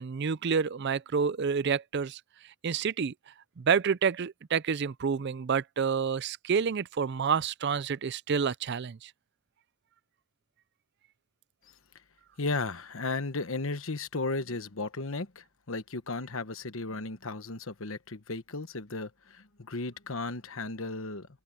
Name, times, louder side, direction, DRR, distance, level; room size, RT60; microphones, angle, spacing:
voice 1, 0.0-2.2 2.6-3.1 3.6-9.1, right 6 dB, 50° right, 0.4 m, -28 dB
voice 2, 12.4-21.3, left 3 dB, 65° left, 1.2 m, -35 dB
head